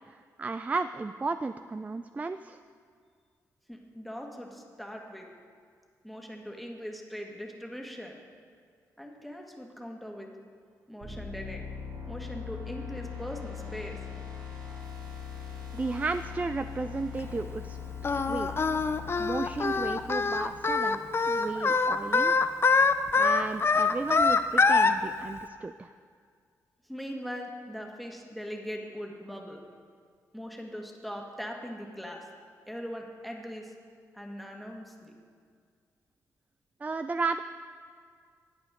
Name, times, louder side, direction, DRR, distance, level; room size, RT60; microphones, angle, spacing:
voice 1, 0.1-2.6 15.7-17.8 18.0-18.7 19.2-22.3 23.1-25.9 36.8-37.4, right 3 dB, 20° right, 10 dB, 0.3 m, -34 dB
voice 2, 3.7-5.3 6.0-8.2 9.0-10.3 10.9-11.7 12.1-14.0 26.9-29.6 30.3-32.3 32.7-33.7 34.1-35.1, equal, ahead, 1 dB, 1.6 m, -40 dB
sound 1, 11.0-20.8, left 7 dB, 75° right, 2.0 m, -41 dB
Singing, 18.0-24.9, left 4 dB, 35° left, 0.5 m, -24 dB
14.0 x 8.8 x 3.6 m, 2.1 s
cardioid pair, 60°, 7 cm